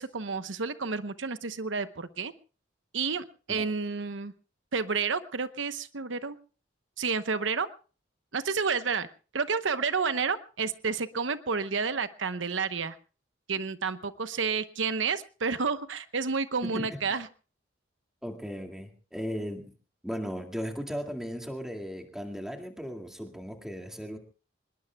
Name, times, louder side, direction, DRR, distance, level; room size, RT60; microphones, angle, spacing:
voice 1, 0.0-2.3 2.9-4.3 4.7-6.4 7.0-7.7 8.3-9.1 9.3-13.0 13.5-17.3, right 5 dB, 85° right, 11 dB, 0.9 m, -30 dB
voice 2, 18.2-19.7 20.0-24.2, equal, 5° right, 3 dB, 2.2 m, -36 dB
25.5 x 21.0 x 2.3 m, 0.36 s
head